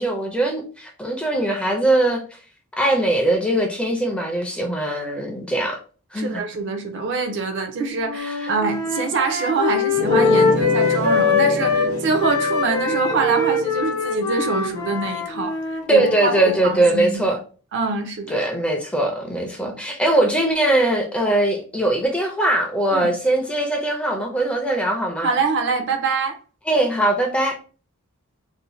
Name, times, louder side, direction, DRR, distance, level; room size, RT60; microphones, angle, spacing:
voice 1, 0.0-2.4 2.8-5.8 6.1-6.4 8.2-8.5 15.9-17.4 18.3-25.3 26.7-27.6, right 1 dB, 5° left, 0.4 m, -21 dB
voice 2, 6.2-15.5 15.9-17.2 17.7-18.4 19.7-19.8 22.9-23.1 25.2-26.4, right 4 dB, 55° right, 0.5 m, -24 dB
sound 1, 8.1-11.9 12.2-16.6, left 4 dB, 65° left, 0.7 m, -22 dB
sound 2, 9.9-15.2, left 2 dB, 80° right, 1.3 m, -28 dB
2.6 x 2.1 x 3.0 m
head